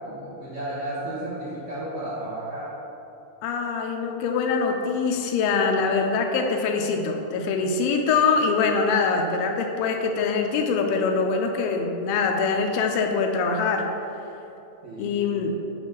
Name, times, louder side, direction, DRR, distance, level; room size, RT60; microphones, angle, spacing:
voice 1, 0.0-2.7 14.8-15.3, right 1 dB, 60° right, -12 dB, 2.0 m, -33 dB
voice 2, 3.4-13.9 15.0-15.6, left 4 dB, 85° left, 3 dB, 2.9 m, -24 dB
8.9 x 3.1 x 6.0 m, 3.0 s
omnidirectional pair, 5.4 m